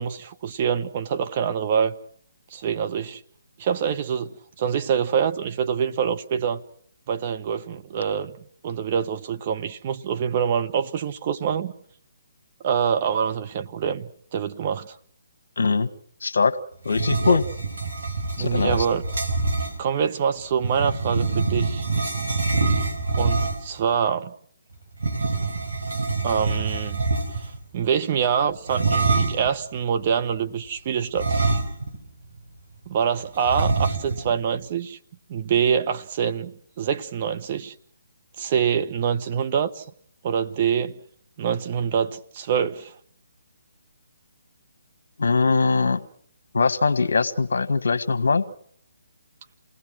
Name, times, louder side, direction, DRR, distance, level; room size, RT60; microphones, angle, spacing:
voice 1, 0.0-2.0 2.5-3.2 3.6-6.6 7.1-8.4 8.6-11.7 12.6-14.9 17.2-17.4 18.4-19.0 19.8-21.8 23.2-24.3 26.2-27.0 27.4-27.5 27.7-31.4 32.9-35.0 35.3-37.7 38.4-39.8 40.2-41.0 41.4-42.9, right 7 dB, 35° right, 1.2 m, -25 dB
voice 2, 15.6-15.9 16.2-16.6 16.8-17.4 18.4-18.8 45.2-46.0 46.5-48.4, left 4 dB, 70° left, 1.3 m, -21 dB
sound 1, 16.8-19.8 20.6-23.8 24.9-27.6 28.7-29.5 31.1-32.1 32.4-32.5 33.5-34.3, right 3 dB, 80° right, 5.1 m, -25 dB
28.5 x 18.5 x 6.3 m
figure-of-eight pair, 145°, 0 cm